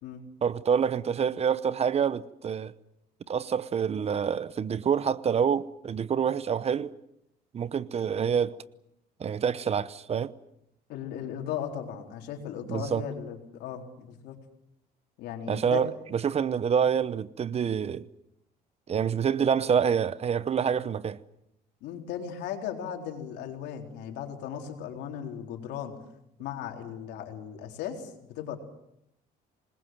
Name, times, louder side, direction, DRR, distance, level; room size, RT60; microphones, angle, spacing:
voice 1, 0.4-2.7 3.3-6.9 7.5-8.6 9.2-10.3 12.7-13.0 15.5-18.1 18.9-21.2, right 7 dB, 40° right, 0.9 m, -27 dB
voice 2, 10.9-14.4 15.2-15.8 21.8-26.0 26.4-28.6, left 9 dB, 85° left, 4.1 m, -37 dB
26.5 x 21.0 x 7.7 m
cardioid pair, 110°, 17 cm